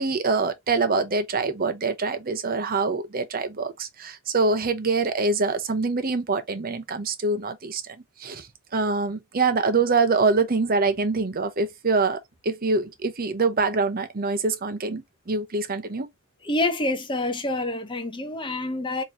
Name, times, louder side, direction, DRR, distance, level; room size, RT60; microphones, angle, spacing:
voice 1, 0.0-8.5 8.7-16.1, right 3 dB, 40° right, 0.8 m, -25 dB
voice 2, 16.4-19.0, left 2 dB, 20° left, 0.8 m, -27 dB
3.9 x 3.1 x 2.9 m
head